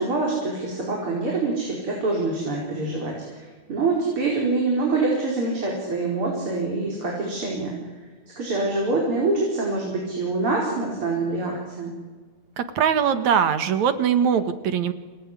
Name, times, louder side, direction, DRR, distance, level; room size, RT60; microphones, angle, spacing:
voice 1, 0.0-7.7 8.4-11.9, right 3 dB, 45° right, -2 dB, 5.7 m, -25 dB
voice 2, 12.6-14.9, right 8 dB, 70° right, 10 dB, 3.0 m, -21 dB
27.0 x 20.0 x 9.9 m, 1.4 s
omnidirectional pair, 3.4 m